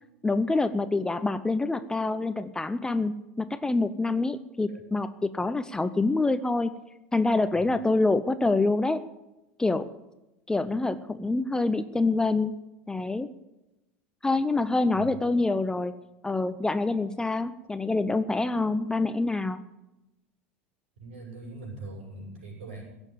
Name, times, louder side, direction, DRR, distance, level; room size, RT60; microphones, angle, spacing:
voice 1, 0.2-6.7 7.1-9.0 9.6-9.9 10.5-12.6 12.9-13.3 14.2-15.9 16.2-19.6, left 3 dB, 10° left, 12 dB, 0.6 m, -26 dB
voice 2, 21.0-22.8, right 3 dB, 65° right, -1 dB, 7.0 m, -42 dB
16.5 x 7.1 x 9.9 m, 0.98 s
figure-of-eight pair, 80°, 7 cm